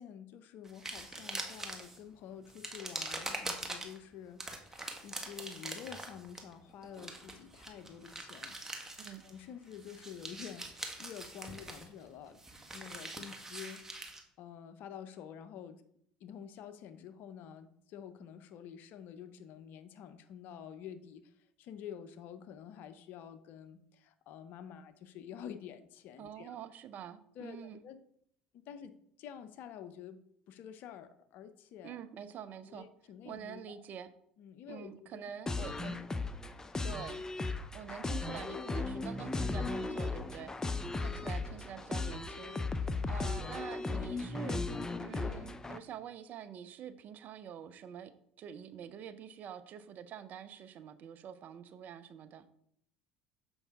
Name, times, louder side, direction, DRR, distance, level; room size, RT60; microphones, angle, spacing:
voice 1, 0.0-8.6 9.2-12.4 12.7-13.8 14.4-15.8 16.2-26.6 27.3-28.0 28.5-32.0 32.7-33.8 34.4-35.2 35.5-35.7 41.1-41.3 42.8-43.1, left 8 dB, 60° left, 11 dB, 0.7 m, -49 dB
sound 1, 0.7-2.0 2.5-4.0 4.4-9.5 9.7-14.2, right 2 dB, 15° right, 1.3 m, -43 dB
voice 2, 26.2-27.8 31.8-32.9 33.2-34.1 34.7-36.0 36.8-37.2 37.7-40.5 41.0-42.8 43.1-44.6 45.0-48.1 48.4-52.4, right 9 dB, 50° right, 11 dB, 0.6 m, -46 dB
sound 2, 35.5-45.8, left 3 dB, 15° left, 0.5 m, -36 dB
7.0 x 5.3 x 3.5 m, 0.69 s
hypercardioid pair, 70°, 4 cm